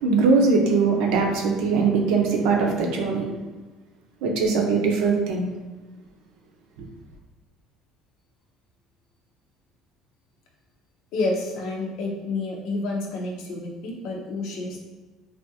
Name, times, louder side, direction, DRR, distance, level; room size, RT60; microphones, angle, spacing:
voice 1, 0.0-3.3 4.2-5.5, right 4 dB, 80° right, 1 dB, 0.6 m, -21 dB
voice 2, 11.1-14.8, left 2 dB, 70° left, 0 dB, 0.7 m, -29 dB
3.3 x 2.5 x 2.8 m, 1.2 s
cardioid pair, 120°, 0 cm